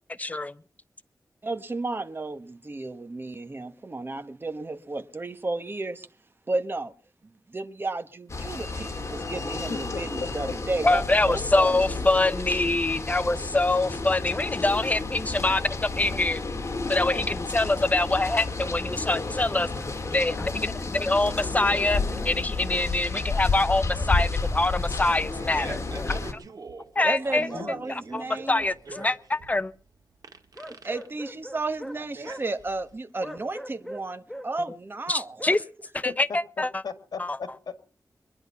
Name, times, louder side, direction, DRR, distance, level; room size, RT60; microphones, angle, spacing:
voice 1, 0.2-0.5 10.8-16.4 16.9-19.7 20.1-26.4 27.0-27.5 27.9-29.7 35.1-35.6 35.9-36.8 37.2-37.4, left 2 dB, 25° left, 0.7 m, -25 dB
voice 2, 1.4-6.1 6.5-6.9 7.5-11.8 27.0-28.6 30.8-35.6, right 2 dB, 35° right, 1.3 m, -33 dB
sound 1, 8.3-26.3, left 3 dB, 45° left, 2.1 m, -31 dB
voice 3, 9.7-10.0 27.4-27.8 36.0-37.8, left 5 dB, 85° left, 1.6 m, -37 dB
sound 2, 16.6-16.7 17.0-17.1 18.3-20.2 20.9-22.3 22.6-22.8 23.9-24.1 25.9-26.1 27.5-27.7 28.9-29.1 30.5-32.4 33.2-34.5 35.4-35.6, equal, 5° left, 1.2 m, -41 dB
Fart, 25.3-33.0, right 4 dB, 70° right, 1.9 m, -43 dB
22.5 x 10.5 x 5.7 m
wide cardioid pair, 110°, 7 cm